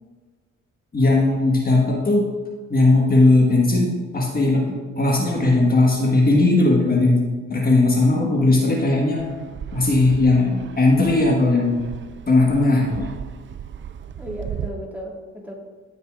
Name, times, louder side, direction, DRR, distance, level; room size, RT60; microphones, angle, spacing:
voice 1, 0.9-2.3 2.7-7.2 7.5-9.3 9.7-11.9 12.3-13.1, left 2 dB, 30° left, -1 dB, 1.4 m, -18 dB
voice 2, 8.1-8.6 14.2-15.5, equal, 5° right, -2 dB, 1.8 m, -35 dB
Fixed-wing aircraft airplane, 9.2-14.7, right 9 dB, 40° right, 0.5 m, -36 dB
15.5 x 5.4 x 2.4 m, 1.4 s
cardioid pair, 90°, 30 cm